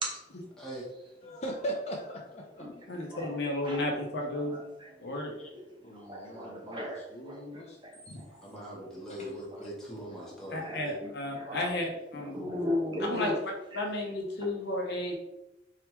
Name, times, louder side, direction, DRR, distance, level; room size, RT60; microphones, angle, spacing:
voice 1, 1.2-2.6 5.1-5.5 5.8-7.8 8.1-8.2 9.1-9.3, right 1 dB, 40° left, -1 dB, 0.6 m, -40 dB
voice 2, 2.9-4.6 5.0-5.3 10.5-12.4 13.1-13.3 13.7-15.1, left 1 dB, 60° left, 0 dB, 0.9 m, -33 dB
voice 3, 3.6-4.0 4.5-4.9 6.0-7.4 10.2-10.3 10.6-11.7 12.2-13.4 13.7-13.9, left 1 dB, 25° right, 0 dB, 0.8 m, -36 dB
voice 4, 6.2-6.9 8.4-11.0, equal, 5° left, -6 dB, 1.4 m, -42 dB
4.5 x 3.5 x 3.0 m, 0.91 s
head